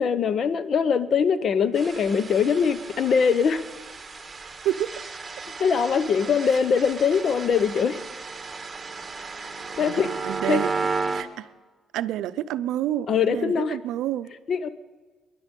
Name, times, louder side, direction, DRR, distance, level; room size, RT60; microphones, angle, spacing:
voice 1, 0.0-3.6 5.6-8.0 9.8-10.1 10.5-10.6 13.1-13.8 14.5-14.7, left 6 dB, 55° left, 14 dB, 0.9 m, -22 dB
sound 1, 1.7-11.2, right 4 dB, 25° right, 1.6 m, -34 dB
voice 2, 9.8-10.7 11.1-11.5 11.9-14.3, right 12 dB, 90° right, 14 dB, 0.5 m, -28 dB
19.5 x 11.5 x 5.3 m, 1.4 s
cardioid pair, 90°, 0 cm